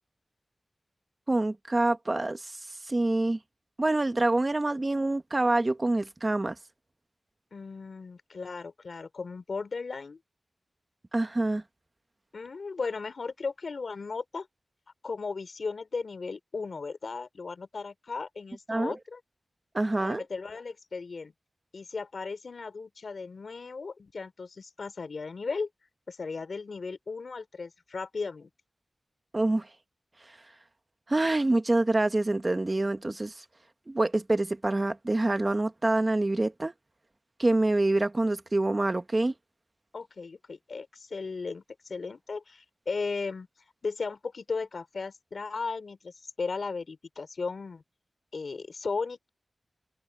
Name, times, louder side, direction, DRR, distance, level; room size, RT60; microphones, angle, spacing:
voice 1, 1.3-2.6 2.9-3.4 3.8-6.5 11.1-11.6 18.7-18.9 19.7-20.2 29.3-29.7 31.1-33.4 33.9-36.7 37.4-39.3, right 2 dB, 30° right, 1.4 m, -26 dB
voice 2, 7.5-10.2 12.3-14.5 15.0-19.2 20.0-21.3 21.7-25.7 26.1-28.5 39.9-43.5 43.8-47.8 48.3-49.3, left 4 dB, 70° left, 3.8 m, -36 dB
wide cardioid pair, 90°, 0 cm